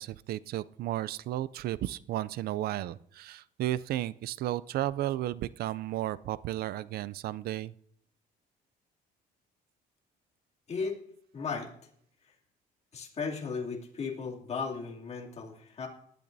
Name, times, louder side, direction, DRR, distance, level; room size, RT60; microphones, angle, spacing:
voice 1, 0.0-7.7, right 14 dB, 65° right, 19 dB, 0.4 m, -33 dB
voice 2, 10.7-11.0 11.3-11.7 12.9-15.9, left 5 dB, 40° left, -1 dB, 2.7 m, -35 dB
19.0 x 12.0 x 2.7 m, 0.69 s
cardioid pair, 110°, 17 cm